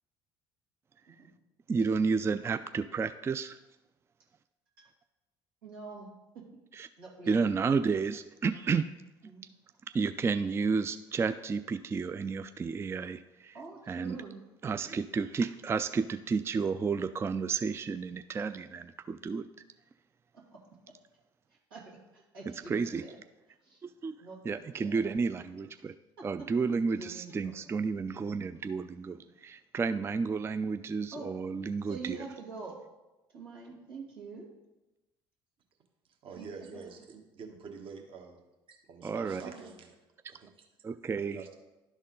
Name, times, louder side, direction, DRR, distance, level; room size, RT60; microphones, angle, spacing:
voice 1, 1.7-3.6 6.7-6.9 7.3-8.9 9.9-13.6 13.9-14.2 14.6-19.5 22.7-23.0 23.8-24.1 24.5-25.9 26.2-32.2 39.0-39.4 40.8-41.4, right 5 dB, 20° right, 11 dB, 0.3 m, -31 dB
voice 2, 5.6-6.1 6.3-6.4 7.0-7.5 9.2-9.5 13.5-14.4 14.8-15.0 20.5-20.6 21.7-23.1 23.6-23.8 24.2-25.0 26.2-26.3 26.9-27.5 31.1-31.3 31.8-32.8 33.3-34.5 36.3-36.9 39.4-39.7, right 4 dB, 90° right, -4 dB, 2.2 m, -45 dB
voice 3, 36.2-38.4 38.7-39.9 40.3-40.4 41.2-41.5, right 5 dB, 50° right, 3 dB, 1.2 m, -46 dB
11.5 x 4.1 x 3.8 m, 1.0 s
hypercardioid pair, 65°, 11 cm